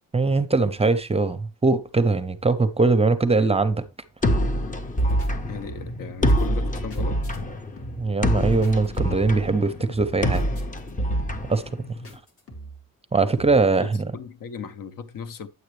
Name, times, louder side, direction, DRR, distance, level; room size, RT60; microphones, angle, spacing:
voice 1, 0.1-3.8 8.0-10.4 11.5-11.6 13.1-14.1, right 3 dB, 15° right, 0.6 m, -21 dB
sound 1, 4.2-12.1, equal, 20° left, 0.9 m, -25 dB
sound 2, 5.0-5.3 5.6-6.0 6.3-7.4 7.8-8.1 8.4-9.4 9.7-10.9 11.2-11.6 12.0-12.9 13.3-13.6, right 2 dB, 40° left, 2.2 m, -42 dB
voice 2, 5.5-7.3 13.7-15.5, left 6 dB, 65° left, 1.0 m, -37 dB
9.6 x 7.8 x 3.2 m
cardioid pair, 145°, 36 cm